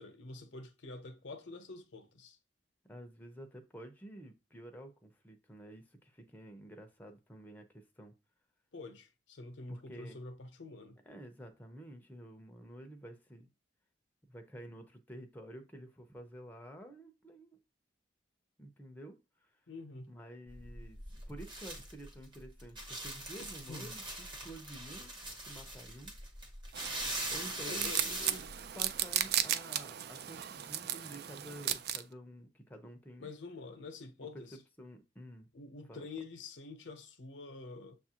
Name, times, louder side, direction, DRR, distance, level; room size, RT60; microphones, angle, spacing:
voice 1, 0.0-2.4 8.7-11.0 19.7-20.1 23.7-24.0 27.6-28.3 33.2-34.6 35.5-37.9, left 3 dB, 90° left, 0.8 m, -47 dB
voice 2, 2.9-8.1 9.7-10.2 11.1-13.5 14.3-17.6 18.6-19.2 19.4-19.5 20.1-21.0 21.3-24.0 24.4-25.2 25.4-26.1 27.3-28.4 28.7-33.3 34.5-35.5 35.9-36.1, right 1 dB, 10° left, 0.5 m, -50 dB
sound 1, 20.5-29.3, right 1 dB, 25° right, 0.9 m, -42 dB
sound 2, 26.7-32.0, right 10 dB, 60° right, 0.3 m, -36 dB
6.7 x 2.4 x 2.8 m
head